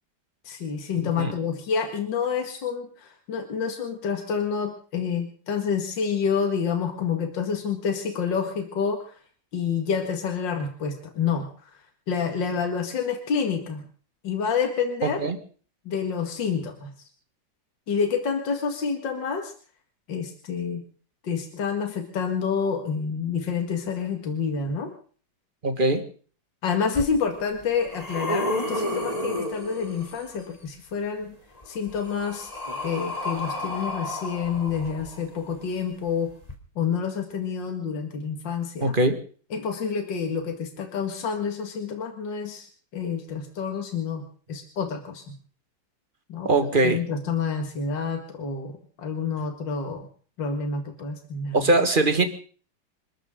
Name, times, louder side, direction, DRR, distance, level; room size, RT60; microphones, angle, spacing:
voice 1, 0.4-9.1 9.5-11.7 12.1-13.8 14.2-15.2 15.9-16.9 17.9-19.5 20.1-20.8 21.2-24.9 26.6-31.4 31.7-32.5 32.8-36.3 36.8-38.9 39.5-42.7 42.9-45.4 46.3-46.5 46.8-50.1 50.4-51.7, left 6 dB, 70° left, 4 dB, 2.6 m, -28 dB
voice 2, 1.0-1.3 15.0-15.4 25.6-26.0 38.8-39.1 46.4-47.0 51.5-52.2, right 2 dB, 25° right, 7 dB, 1.9 m, -21 dB
sound 1, 26.9-27.0 27.6-30.4 31.6-35.5 36.4-36.5, left 1 dB, 20° left, 2.9 m, -31 dB
27.5 x 13.0 x 3.8 m, 0.43 s
omnidirectional pair, 2.1 m